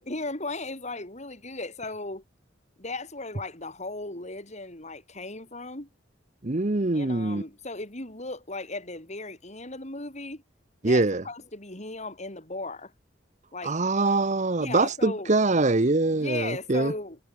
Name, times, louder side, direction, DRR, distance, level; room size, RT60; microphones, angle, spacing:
voice 1, 0.0-2.2 2.8-5.9 6.9-10.4 10.8-12.9 13.5-13.8 14.6-15.3 16.1-17.2, left 2 dB, 40° left, 6.0 m, -36 dB
voice 2, 6.4-7.4 10.8-11.2 13.6-16.9, right 2 dB, 40° right, 1.0 m, -24 dB
head